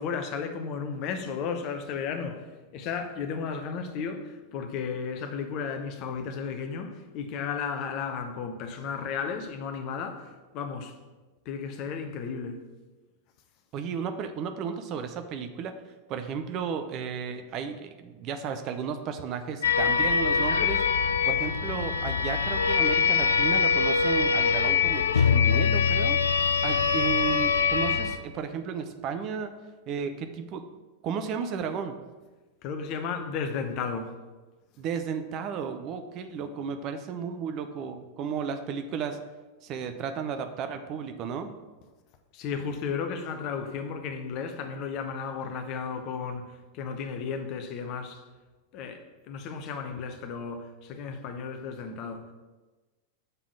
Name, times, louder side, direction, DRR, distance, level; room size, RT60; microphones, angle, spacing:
voice 1, 0.0-11.0 11.5-12.6 32.6-34.1 42.3-48.2 48.7-52.3, left 6 dB, 40° left, 0.7 m, -34 dB
voice 2, 13.7-15.8 16.1-20.8 21.2-26.2 26.6-29.5 29.9-30.7 31.0-32.0 34.8-39.2 39.6-41.5, right 6 dB, 35° right, 0.5 m, -33 dB
sound 1, 19.6-28.2, left 6 dB, 70° left, 0.3 m, -24 dB
6.7 x 3.7 x 6.0 m
figure-of-eight pair, 90°, 0 cm